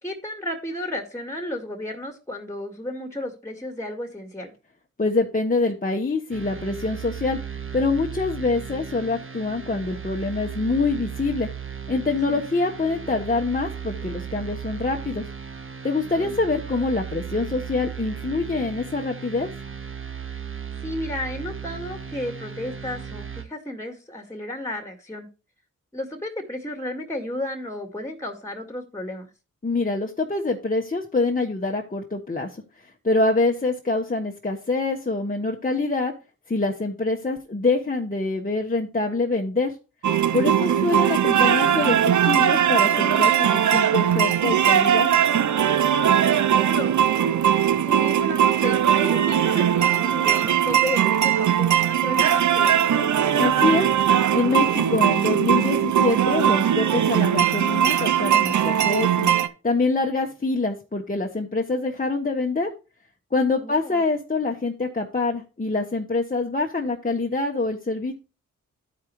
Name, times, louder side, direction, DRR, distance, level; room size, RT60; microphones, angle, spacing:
voice 1, 0.0-4.5 12.3-12.4 16.2-16.4 20.2-20.3 20.8-25.3 25.9-29.3 40.7-40.9 45.9-47.1 47.8-53.1 63.6-64.0, left 1 dB, 10° left, 5 dB, 1.9 m, -33 dB
voice 2, 5.0-7.4 7.7-11.5 11.9-15.3 15.8-19.5 29.6-36.1 36.5-39.7 40.3-45.1 53.4-59.3 59.6-62.7 63.3-68.1, left 3 dB, 25° left, 0 dB, 1.2 m, -25 dB
sound 1, 6.3-23.4, right 7 dB, 40° right, 1.4 m, -36 dB
sound 2, 40.0-59.5, right 9 dB, 60° right, 0.7 m, -20 dB
12.5 x 4.8 x 3.1 m, 0.32 s
supercardioid pair, 40°, 33 cm